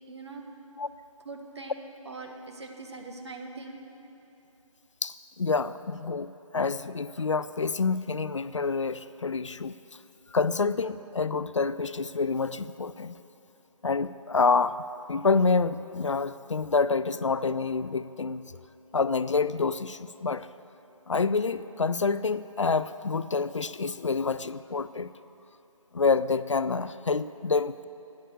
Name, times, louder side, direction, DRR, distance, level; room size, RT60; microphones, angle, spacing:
voice 1, 0.1-0.4 1.2-3.8, right 3 dB, 50° right, 2 dB, 1.5 m, -42 dB
voice 2, 5.0-9.8 10.3-13.2 13.8-14.8 15.1-18.4 18.9-20.5 21.1-25.1 25.9-27.9, left 4 dB, 60° left, 14 dB, 0.4 m, -27 dB
13.0 x 9.3 x 6.6 m, 2.9 s
figure-of-eight pair, 160°, 18 cm